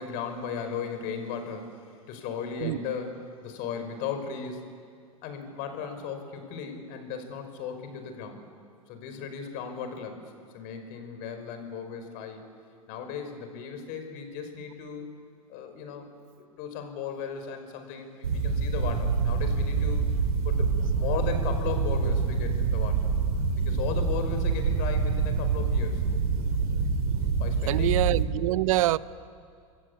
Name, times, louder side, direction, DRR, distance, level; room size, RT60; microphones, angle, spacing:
voice 1, 0.0-4.6 5.2-8.5 8.9-12.4 12.9-15.1 15.5-16.1 16.5-20.1 20.4-23.1 23.6-26.0 27.4-28.0, left 6 dB, 55° left, 7 dB, 5.4 m, -36 dB
sound 1, 18.2-28.2, right 5 dB, 85° right, 3.8 m, -26 dB
voice 2, 27.7-29.0, right 16 dB, 65° right, 18 dB, 0.8 m, -25 dB
29.5 x 23.0 x 8.6 m, 2.3 s
hypercardioid pair, 95°, 18 cm